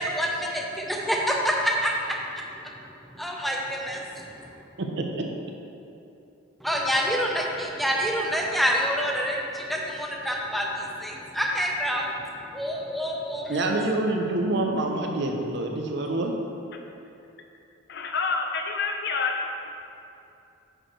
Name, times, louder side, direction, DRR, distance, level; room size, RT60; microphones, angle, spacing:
voice 1, 0.0-1.9 3.1-4.5 6.6-12.1 12.5-13.6, equal, ahead, -1 dB, 0.6 m, -27 dB
voice 2, 4.8-5.3 13.5-16.3, right 2 dB, 60° right, 2 dB, 0.7 m, -26 dB
voice 3, 17.9-19.8, left 4 dB, 55° left, 3 dB, 0.6 m, -28 dB
6.6 x 4.8 x 4.5 m, 2.7 s
head